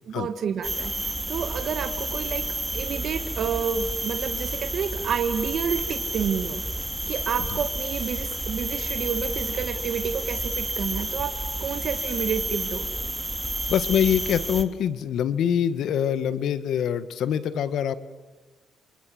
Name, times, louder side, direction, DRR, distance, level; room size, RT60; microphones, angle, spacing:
voice 1, 0.1-2.5 2.7-6.6 7.1-11.3 11.6-12.9, right 7 dB, 65° right, 7 dB, 1.7 m, -29 dB
sound 1, 0.6-14.6, right 1 dB, 10° right, 2.6 m, -30 dB
voice 2, 13.7-17.9, left 9 dB, 75° left, 14 dB, 1.4 m, -24 dB
28.0 x 27.5 x 7.8 m, 1.2 s
cardioid pair, 90°, 0 cm